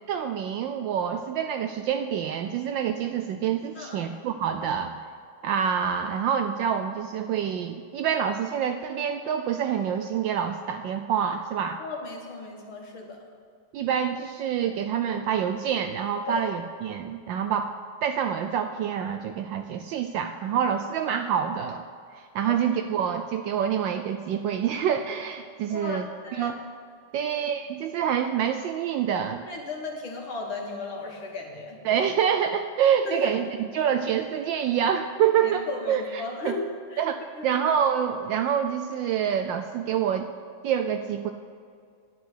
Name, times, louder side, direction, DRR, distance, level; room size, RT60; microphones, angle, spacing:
voice 1, 0.1-5.0 5.4-11.8 13.7-21.9 22.1-26.6 27.1-29.5 31.8-36.6 37.0-40.3 40.6-41.3, right 8 dB, 75° right, 6 dB, 1.1 m, -27 dB
voice 2, 3.8-4.2 11.8-13.2 16.3-16.4 25.7-26.5 27.2-27.3 29.4-31.8 33.0-33.3 35.4-37.0 37.4-37.5, left 3 dB, 65° left, 0 dB, 2.4 m, -36 dB
10.0 x 9.7 x 6.4 m, 2.2 s
omnidirectional pair, 2.4 m